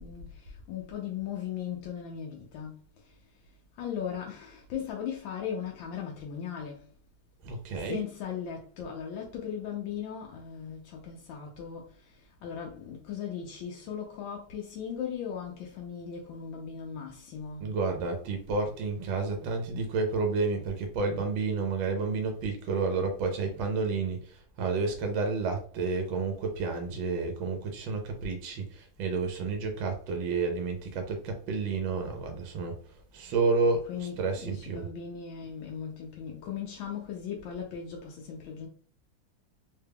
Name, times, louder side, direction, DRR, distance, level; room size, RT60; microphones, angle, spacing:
voice 1, 0.0-6.9 7.7-17.7 33.9-34.2 34.4-38.7, left 8 dB, 90° left, 1.4 m, -38 dB
voice 2, 7.4-8.0 17.6-34.9, right 4 dB, 80° right, 1.4 m, -30 dB
3.7 x 2.2 x 3.4 m
omnidirectional pair, 2.1 m